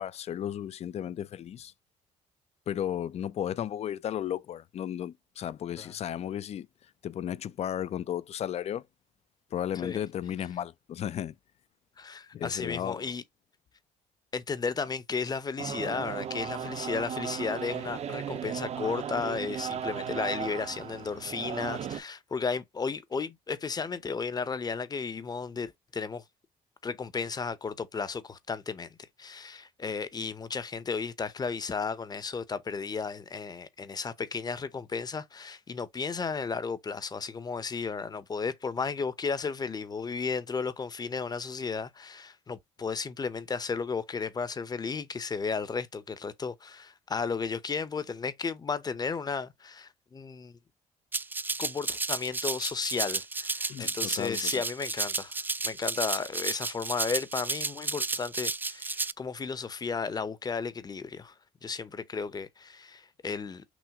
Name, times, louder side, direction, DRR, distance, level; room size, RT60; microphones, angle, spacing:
voice 1, 0.0-1.7 2.7-6.7 7.0-8.8 9.5-11.3 12.3-13.0 53.7-54.5, left 10 dB, 50° left, 0.4 m, -34 dB
voice 2, 12.0-13.2 14.3-26.2 26.8-28.9 29.2-50.6 51.6-55.4 55.6-61.3 61.6-63.6, left 5 dB, 30° left, 0.8 m, -34 dB
sound 1, 15.6-22.0, right 8 dB, 55° right, 0.7 m, -36 dB
Rattle (instrument), 51.1-59.1, right 3 dB, 15° right, 0.3 m, -32 dB
6.1 x 2.3 x 3.5 m
supercardioid pair, 75°, 13 cm